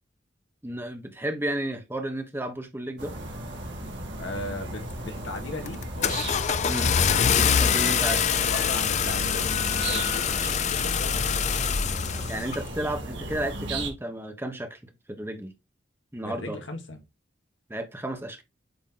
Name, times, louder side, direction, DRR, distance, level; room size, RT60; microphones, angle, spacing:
voice 1, 0.6-3.1 6.7-6.9 7.4-8.2 12.3-14.8 15.1-15.5 16.1-16.6 17.7-18.4, right 1 dB, 10° right, 0.9 m, -32 dB
sound 1, 3.0-13.9, right 2 dB, 70° right, 1.8 m, -36 dB
voice 2, 4.2-6.2 7.8-11.7 16.2-17.0, left 1 dB, 85° left, 1.6 m, -38 dB
Car / Engine starting, 4.9-5.2 5.7-12.6, left 7 dB, 40° left, 0.4 m, -25 dB
8.5 x 2.9 x 3.8 m
head